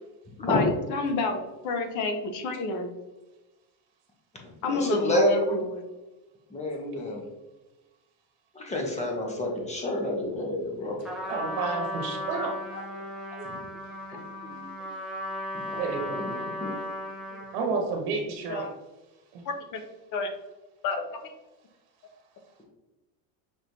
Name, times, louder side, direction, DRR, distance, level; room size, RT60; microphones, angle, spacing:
voice 1, 0.4-2.9 4.6-5.8 11.2-11.3 12.1-12.2 12.7-12.9 13.3-13.5 14.1-14.2 14.5-14.6 18.5-18.7 19.4-19.8 20.1-20.3 20.8-21.3, left 3 dB, 40° left, 6 dB, 0.7 m, -30 dB
voice 2, 4.7-5.6 6.5-7.2 8.5-11.0 15.7-15.8 16.3-16.7, left 1 dB, 15° left, 0 dB, 0.9 m, -28 dB
Trumpet, 11.0-17.6, left 1 dB, ahead, 0.4 m, -36 dB
voice 3, 11.3-12.6 15.8-16.3 17.5-18.7 19.3-19.4, right 4 dB, 65° right, 1 dB, 1.1 m, -30 dB
6.1 x 3.1 x 2.7 m, 1.1 s
cardioid pair, 140°, 45 cm